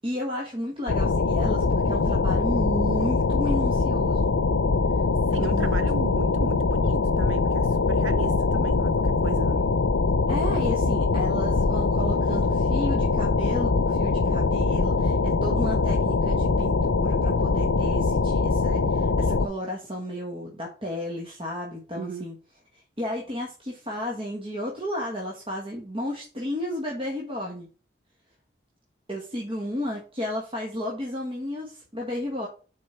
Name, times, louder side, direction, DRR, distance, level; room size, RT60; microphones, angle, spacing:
voice 1, 0.0-4.4 5.3-5.8 10.3-22.4 22.7-27.7 29.1-32.5, equal, 30° right, 1.3 m, -33 dB
sound 1, 0.9-19.5, left 3 dB, 85° left, 0.6 m, -23 dB
voice 2, 5.3-9.6 21.9-22.3, right 5 dB, 85° right, 0.5 m, -36 dB
6.5 x 4.4 x 5.5 m
head